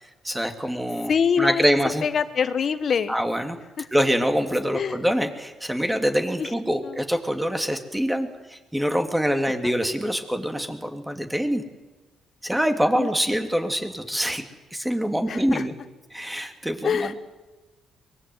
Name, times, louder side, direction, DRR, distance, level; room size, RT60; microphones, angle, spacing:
voice 1, 0.0-1.1 1.4-2.0 3.1-3.6 3.9-11.6 12.4-14.4 14.7-15.7 16.1-17.1, equal, 5° right, 6 dB, 2.9 m, -25 dB
voice 2, 1.1-1.6 2.0-3.1 3.8-3.9 4.7-5.0 6.4-6.5 6.8-7.0 12.9-13.1 15.3-15.6 16.8-17.1, left 7 dB, 50° left, 12 dB, 1.7 m, -24 dB
23.5 x 21.5 x 9.4 m, 1.1 s
cardioid pair, 90°, 0 cm